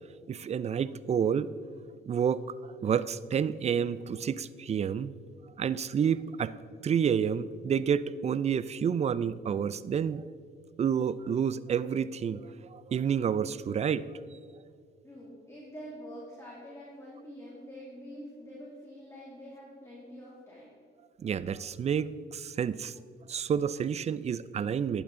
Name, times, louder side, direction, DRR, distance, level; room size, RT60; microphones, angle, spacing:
voice 1, 0.3-1.5 2.1-2.4 2.8-5.1 5.6-6.5 6.8-10.2 10.8-14.0 21.2-22.9 23.3-25.0, right 7 dB, 35° right, 17 dB, 0.4 m, -29 dB
voice 2, 15.0-20.7, equal, 15° left, -6 dB, 2.5 m, -46 dB
11.5 x 8.7 x 3.7 m, 2.2 s
cardioid pair, 90°, 20 cm